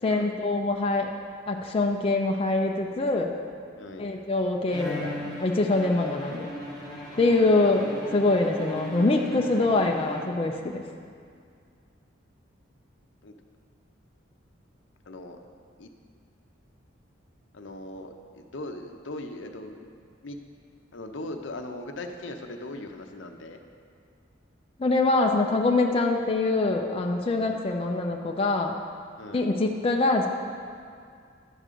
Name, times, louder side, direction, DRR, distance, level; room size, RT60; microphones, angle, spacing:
voice 1, 0.0-1.1 1.5-3.3 4.0-6.5 7.2-10.8 24.8-28.7 29.3-30.3, left 2 dB, 30° left, 1 dB, 0.4 m, -24 dB
voice 2, 3.8-4.1 7.3-7.7 13.2-13.3 15.1-15.4 15.8-15.9 17.5-19.9 20.2-20.4 20.9-23.6 27.4-27.6 29.2-29.5, left 2 dB, 75° left, 5 dB, 0.7 m, -39 dB
Bowed string instrument, 4.7-10.7, left 1 dB, 25° right, 1.9 m, -38 dB
11.0 x 3.7 x 6.7 m, 2.3 s
head